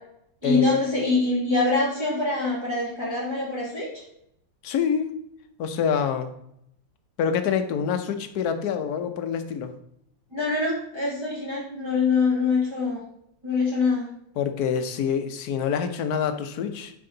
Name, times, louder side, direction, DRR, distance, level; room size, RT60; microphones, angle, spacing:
voice 1, 0.4-4.0 10.3-13.0 13.4-14.1, left 3 dB, 15° right, -7 dB, 2.4 m, -24 dB
voice 2, 4.6-5.1 5.6-6.3 7.2-9.8 14.4-16.9, left 7 dB, 65° left, 8 dB, 1.2 m, -26 dB
8.1 x 5.7 x 3.9 m, 0.74 s
omnidirectional pair, 2.0 m